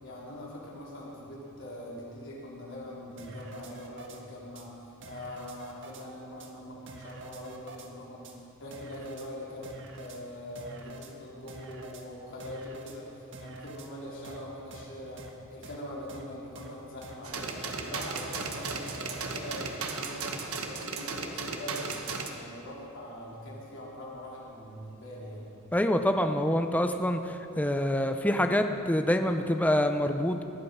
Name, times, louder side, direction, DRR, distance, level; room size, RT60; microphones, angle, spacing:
voice 1, 0.0-4.7 5.0-15.2 15.5-20.2 20.6-25.5, left 1 dB, 60° left, -5 dB, 4.1 m, -43 dB
sound 1, 3.2-4.2 4.6-4.7 5.0-6.0 6.4-6.5 6.9-7.9 8.2-8.4 8.7-9.3 9.6-10.2 10.6-11.1 11.5-12.0 12.4-13.0 13.3-13.9 14.2-14.4 14.7-14.8 15.2-15.3 15.6-15.8 16.1-16.2 16.6-16.7 17.0-17.2 17.5-19.8, right 2 dB, 60° right, 1.5 m, -46 dB
sound 2, 17.2-22.3, right 4 dB, 90° right, 1.4 m, -36 dB
voice 2, 25.7-30.4, left 1 dB, 5° left, 6 dB, 0.7 m, -26 dB
19.5 x 11.5 x 5.7 m, 2.8 s
head